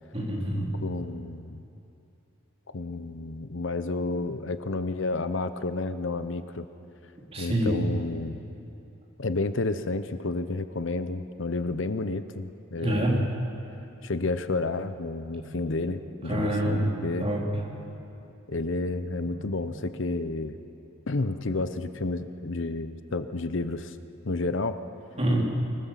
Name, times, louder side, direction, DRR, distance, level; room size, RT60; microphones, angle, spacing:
voice 1, 0.1-0.7 7.3-7.7 12.8-13.2 16.3-16.9 17.2-17.4 25.2-25.4, right 1 dB, 30° right, -3 dB, 3.5 m, -26 dB
voice 2, 0.8-1.6 2.7-6.6 7.4-8.4 9.2-13.3 14.0-17.3 18.5-20.6 21.1-24.0 24.2-24.8, left 3 dB, 65° left, 11 dB, 0.8 m, -31 dB
Telephone, 15.3-16.1 17.3-18.0 19.2-19.9 21.1-21.6, equal, 85° right, 7.3 m, -46 dB
25.5 x 16.0 x 7.4 m, 2.9 s
head